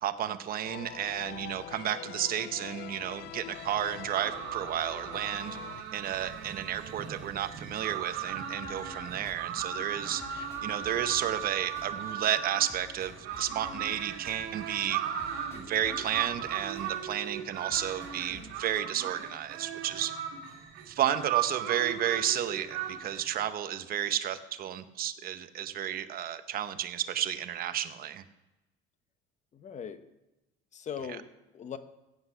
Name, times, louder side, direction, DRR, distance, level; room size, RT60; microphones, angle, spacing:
voice 1, 0.0-5.6 5.9-15.0 15.5-20.1 20.9-28.2, right 10 dB, 45° right, 10 dB, 0.8 m, -32 dB
sound 1, 0.6-5.8, left 13 dB, 55° left, 0.4 m, -45 dB
sound 2, 3.5-23.4, right 9 dB, 85° right, 2.1 m, -37 dB
sound 3, 8.6-18.6, left 1 dB, 10° left, 2.1 m, -53 dB
voice 2, 29.5-30.1 30.7-31.8, left 7 dB, 35° left, 11 dB, 0.9 m, -40 dB
15.5 x 8.1 x 5.6 m, 1.0 s
cardioid pair, 140°, 21 cm